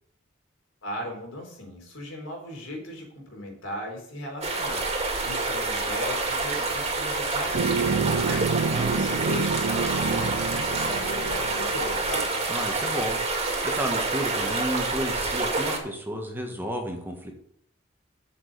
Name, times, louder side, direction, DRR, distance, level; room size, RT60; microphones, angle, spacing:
voice 1, 0.8-4.9 5.2-12.3, left 1 dB, 85° left, 1 dB, 3.9 m, -37 dB
sound 1, 4.4-15.8, right 3 dB, 35° right, 2.5 m, -27 dB
sound 2, 7.5-12.2, right 4 dB, 75° right, 0.5 m, -28 dB
voice 2, 8.6-9.0 12.5-13.2 13.6-17.3, equal, 10° right, 2 dB, 1.5 m, -32 dB
7.4 x 6.9 x 7.8 m, 0.68 s
head